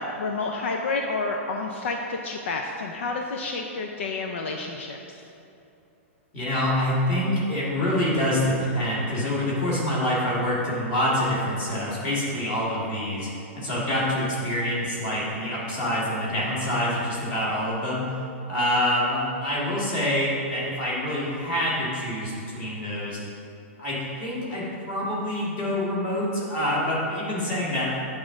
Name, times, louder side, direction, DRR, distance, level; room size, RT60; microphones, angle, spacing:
voice 1, 0.0-5.3, left 3 dB, 60° left, 2 dB, 0.5 m, -30 dB
voice 2, 6.3-13.3 13.5-18.2 18.5-23.2 23.8-27.9, left 1 dB, 25° left, -6 dB, 1.8 m, -26 dB
8.6 x 3.7 x 6.1 m, 2.8 s
hypercardioid pair, 175°, 7 cm